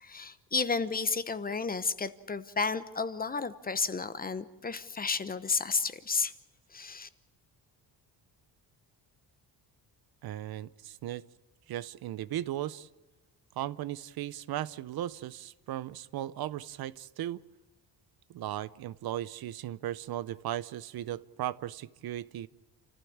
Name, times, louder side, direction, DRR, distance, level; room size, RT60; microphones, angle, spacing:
voice 1, 0.0-6.3 6.7-7.1, left 4 dB, 20° left, 13 dB, 0.9 m, -32 dB
voice 2, 10.2-11.2 11.7-12.9 13.6-17.4 18.3-22.5, right 12 dB, 60° right, 18 dB, 0.7 m, -37 dB
29.0 x 15.0 x 8.6 m, 1.2 s
cardioid pair, 160°, 42 cm